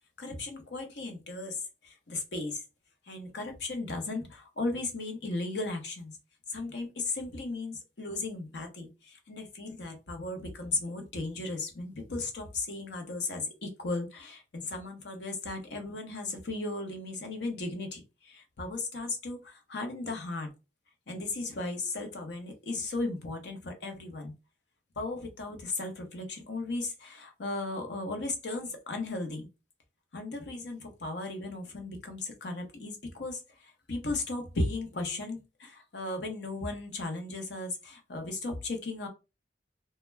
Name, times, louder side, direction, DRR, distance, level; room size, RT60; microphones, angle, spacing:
voice 1, 0.2-1.6 1.8-2.6 3.1-6.2 6.5-20.5 21.1-24.3 25.0-29.5 30.1-39.1, left 2 dB, 75° left, 4 dB, 0.8 m, -36 dB
2.2 x 2.1 x 3.2 m, 0.28 s
head